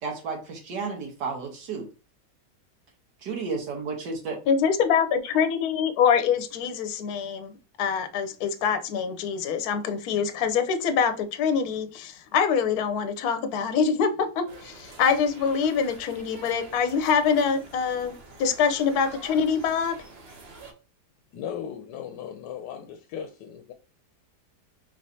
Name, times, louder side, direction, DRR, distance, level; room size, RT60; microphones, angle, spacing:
voice 1, 0.0-1.9 3.2-4.4, right 4 dB, 85° right, 1.7 m, -32 dB
voice 2, 4.5-19.9, left 6 dB, 70° left, 1.1 m, -25 dB
sound 1, 14.5-20.7, right 3 dB, 45° right, 0.9 m, -46 dB
voice 3, 21.3-23.7, left 8 dB, 90° left, 1.2 m, -37 dB
5.2 x 3.2 x 2.7 m
omnidirectional pair, 1.8 m